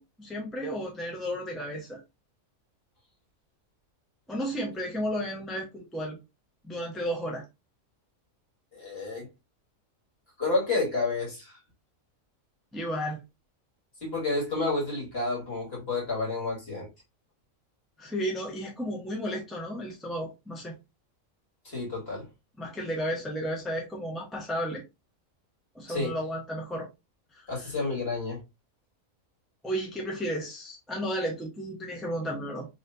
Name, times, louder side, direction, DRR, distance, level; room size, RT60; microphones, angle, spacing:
voice 1, 0.0-2.0 4.3-6.2 6.6-7.4 12.7-13.2 18.0-20.7 22.6-24.8 25.7-26.9 27.3-27.7 29.6-32.7, equal, ahead, 0.9 m, -33 dB
voice 2, 8.7-9.3 10.4-11.5 14.0-16.9 21.6-22.3 25.9-26.2 27.5-28.4, left 3 dB, 45° left, 2.2 m, -30 dB
4.0 x 3.2 x 2.7 m
omnidirectional pair, 1.4 m